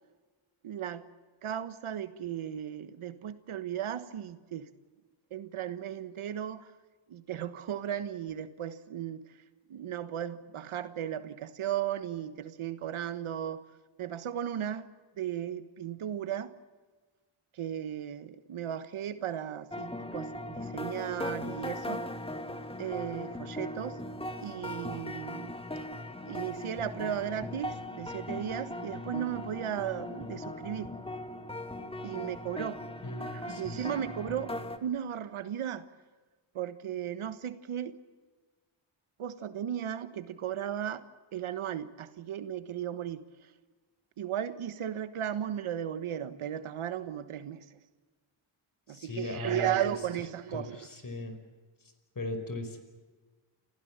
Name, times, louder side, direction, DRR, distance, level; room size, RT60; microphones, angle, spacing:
voice 1, 0.6-1.0 1.4-4.7 5.3-6.7 7.1-9.2 9.7-13.6 14.0-14.9 15.2-16.5 17.5-22.0 22.8-24.0 24.4-25.5 26.2-30.9 32.0-32.8 33.2-34.5 34.8-35.9 36.5-38.0 39.2-41.0 41.3-43.2 44.2-47.6 48.9-50.9, right 10 dB, 75° right, 12 dB, 1.4 m, -35 dB
sound 1, 19.7-34.8, left 1 dB, 10° left, 2.2 m, -39 dB
voice 2, 33.0-33.8 48.9-49.9 50.5-51.4 52.2-52.8, left 2 dB, 40° left, 9 dB, 5.1 m, -38 dB
28.5 x 15.5 x 8.8 m, 1.3 s
cardioid pair, 60°, 50 cm